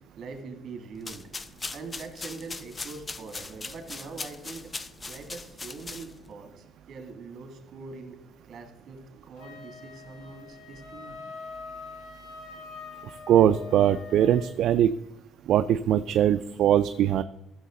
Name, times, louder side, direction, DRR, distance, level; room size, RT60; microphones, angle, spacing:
voice 1, 0.2-1.3 1.7-4.7 5.1-8.2 8.5-11.2, right 4 dB, 50° right, 5 dB, 2.2 m, -43 dB
sound 1, 0.9-6.3, left 3 dB, 20° left, 0.4 m, -40 dB
Wind instrument woodwind instrument, 9.4-14.6, left 4 dB, 80° left, 1.7 m, -43 dB
voice 2, 13.3-14.9 15.5-17.2, right 10 dB, 65° right, 10 dB, 0.3 m, -21 dB
15.5 x 6.5 x 3.8 m, 1.0 s
cardioid pair, 145°, 0 cm